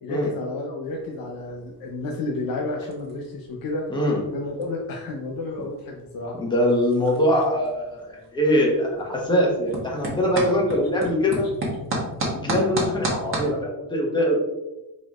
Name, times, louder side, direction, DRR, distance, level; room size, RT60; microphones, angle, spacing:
voice 1, 0.0-3.8 4.3-6.4, left 2 dB, 65° left, 0 dB, 0.7 m, -31 dB
sound 1, 0.8-13.5, right 1 dB, 35° right, 1.3 m, -34 dB
voice 2, 6.4-11.5 12.3-14.4, equal, 10° left, -2 dB, 1.1 m, -22 dB
4.7 x 4.1 x 2.4 m, 1.0 s
cardioid pair, 145°, 37 cm